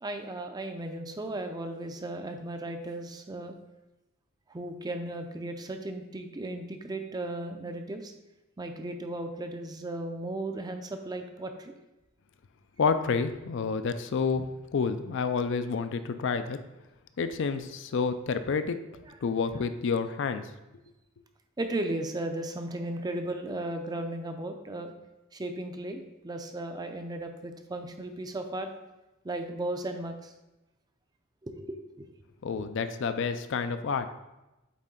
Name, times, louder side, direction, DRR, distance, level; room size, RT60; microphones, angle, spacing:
voice 1, 0.0-3.5 4.5-8.1 8.6-11.7 19.1-19.2 21.6-24.9 25.3-28.7 29.2-30.3 31.4-32.1, right 1 dB, 20° right, 6 dB, 0.5 m, -36 dB
voice 2, 12.8-14.4 14.7-16.6 17.2-18.8 19.2-20.5 32.4-34.1, left 5 dB, 60° left, 10 dB, 0.4 m, -29 dB
8.4 x 3.6 x 3.8 m, 1.0 s
head